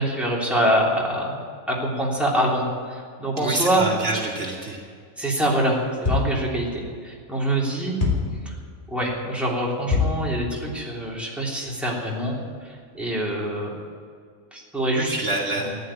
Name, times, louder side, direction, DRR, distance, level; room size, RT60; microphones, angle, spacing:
voice 1, 0.0-1.4 1.7-3.8 5.2-8.0 8.4-8.5 8.9-13.7 14.5-15.1 15.6-15.7, right 1 dB, ahead, -4 dB, 3.2 m, -25 dB
voice 2, 3.4-4.8 15.0-15.7, right 2 dB, 55° right, -2 dB, 2.1 m, -27 dB
sound 1, 6.1-6.5 8.0-8.4 9.9-10.3, left 4 dB, 35° left, 2.7 m, -23 dB
14.5 x 9.8 x 8.7 m, 2.1 s
omnidirectional pair, 1.5 m